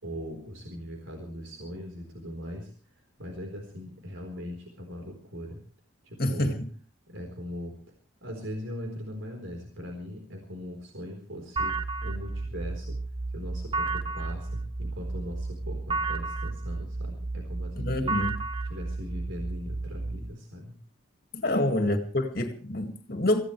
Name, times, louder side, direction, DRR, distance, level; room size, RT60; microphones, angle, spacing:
voice 1, 0.0-2.7 3.2-5.6 6.0-6.5 7.1-7.7 8.2-11.8 12.0-13.0 13.3-18.2 18.7-20.7 21.5-21.6, equal, 85° right, 4.2 m, -40 dB
voice 2, 6.2-6.7 17.8-18.3 21.3-23.4, left 1 dB, 50° left, 2.2 m, -27 dB
sound 1, 11.6-20.2, right 3 dB, 25° right, 1.2 m, -32 dB
24.5 x 16.0 x 3.3 m
head